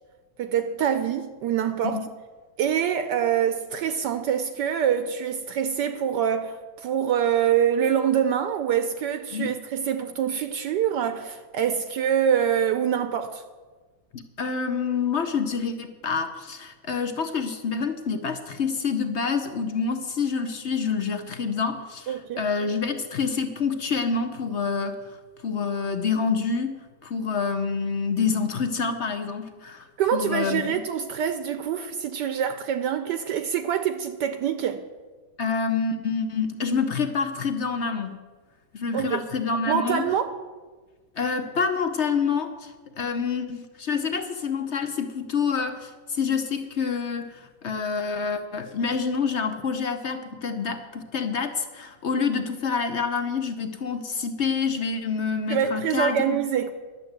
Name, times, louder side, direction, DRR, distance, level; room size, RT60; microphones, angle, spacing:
voice 1, 0.4-2.0 2.6-13.4 22.1-22.4 30.0-34.8 38.9-39.2 39.7-40.3 55.5-56.7, right 8 dB, 70° right, 1.2 m, -25 dB
voice 2, 14.4-25.0 25.4-26.7 27.0-30.7 35.4-38.2 38.7-40.1 41.2-56.4, left 5 dB, 55° left, 0.8 m, -27 dB
11.0 x 7.6 x 7.9 m
omnidirectional pair, 2.0 m